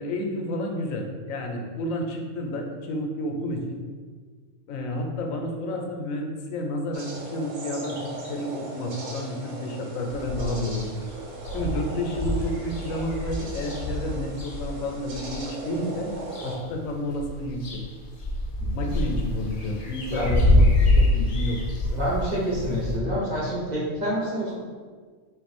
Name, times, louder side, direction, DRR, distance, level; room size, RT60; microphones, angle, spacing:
voice 1, 0.0-3.8 4.7-8.0 8.3-11.1 11.5-16.1 16.4-17.8 18.7-21.6 21.9-22.0, left 1 dB, 85° left, 2 dB, 1.0 m, -30 dB
sound 1, 6.9-16.6, right 2 dB, 75° right, 1.1 m, -38 dB
sound 2, 10.1-10.7 11.1-11.2 11.4-15.4 16.0-16.8 17.1-23.0, left 1 dB, 60° left, 0.4 m, -25 dB
voice 2, 21.9-24.5, equal, 40° right, -6 dB, 0.8 m, -28 dB
3.9 x 2.5 x 4.1 m, 1.5 s
omnidirectional pair, 1.4 m